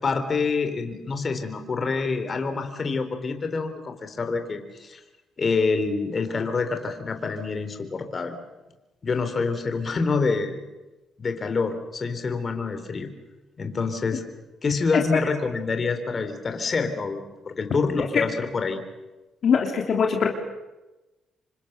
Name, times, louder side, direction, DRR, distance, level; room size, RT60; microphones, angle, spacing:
voice 1, 0.0-5.0 5.4-8.3 9.0-10.6 11.2-13.1 13.6-14.2 14.6-18.8, left 4 dB, 40° left, 7 dB, 3.7 m, -27 dB
voice 2, 19.4-20.3, left 6 dB, 60° left, 1 dB, 3.2 m, -21 dB
27.5 x 25.0 x 6.8 m, 1.1 s
cardioid pair, 90°, 0 cm